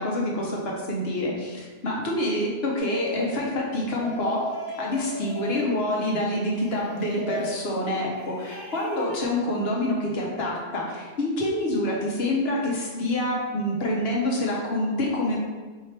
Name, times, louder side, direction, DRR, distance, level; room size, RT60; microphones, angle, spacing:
voice 1, 0.0-4.4 4.8-15.4, left 1 dB, 55° left, -2 dB, 1.0 m, -27 dB
sound 1, 2.8-3.4 3.9-5.8 6.3-7.6 8.1-9.2, equal, 20° left, 1.1 m, -37 dB
4.7 x 3.0 x 3.3 m, 1.3 s
omnidirectional pair, 1.3 m